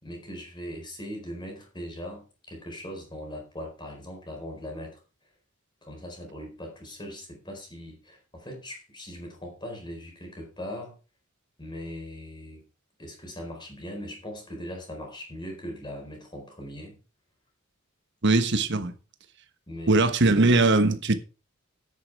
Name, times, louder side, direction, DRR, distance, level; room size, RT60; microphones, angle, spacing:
voice 1, 0.0-5.0 5.8-11.0 11.6-12.6 13.0-17.0 18.8-18.9 19.7-20.3, equal, 20° left, 4.5 m, -40 dB
voice 2, 18.2-18.9 19.9-21.2, right 2 dB, 60° right, 1.3 m, -20 dB
9.8 x 9.4 x 4.7 m
head